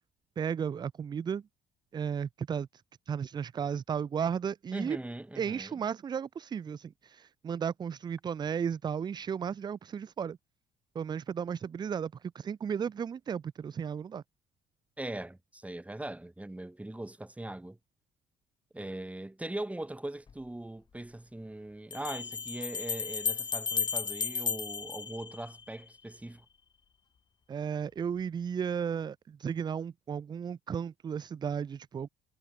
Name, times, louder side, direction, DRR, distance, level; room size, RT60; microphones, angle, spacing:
voice 1, 0.4-1.4 1.9-5.0 5.3-10.4 11.0-14.2 27.5-32.1, right 7 dB, 25° right, 0.3 m, -34 dB
voice 2, 4.7-5.7 15.0-17.8 18.7-26.5, right 1 dB, 10° right, 3.7 m, -40 dB
sound 1, 20.3-20.4 21.9-25.9, left 6 dB, 25° left, 0.5 m, -34 dB
cardioid pair, 110°, 17 cm